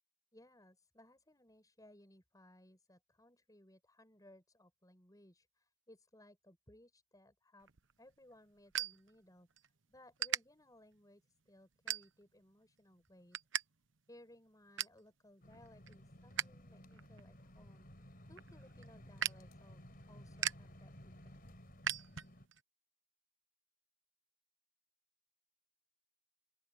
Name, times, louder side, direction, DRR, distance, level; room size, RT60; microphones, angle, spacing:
voice 1, 0.3-7.7 8.0-9.5 9.9-13.4 14.1-17.9 18.2-21.4, left 1 dB, 20° left, 6.8 m, -63 dB
sound 1, 7.6-9.7 10.2-10.4 11.0-11.2 11.9-12.4 12.8-13.6 13.9-14.0 14.4-15.0 15.5-16.6 16.9-22.6, right 10 dB, 80° right, 1.0 m, -41 dB
sound 2, 15.4-22.5, equal, 50° left, 4.8 m, -56 dB
open air
head